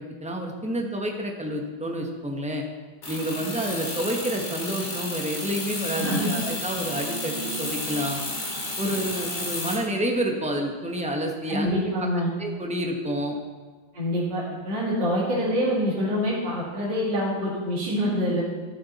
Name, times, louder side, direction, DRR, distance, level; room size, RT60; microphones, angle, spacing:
voice 1, 0.0-2.6 3.1-8.2 8.8-11.8 12.4-13.4, right 1 dB, 5° right, 1 dB, 0.6 m, -29 dB
sound 1, 3.0-9.8, left 2 dB, 55° left, 3.0 m, -32 dB
voice 2, 5.9-6.4 11.5-12.3 13.9-18.4, equal, 60° right, -8 dB, 3.1 m, -26 dB
13.0 x 7.8 x 4.1 m, 1.4 s
omnidirectional pair, 2.1 m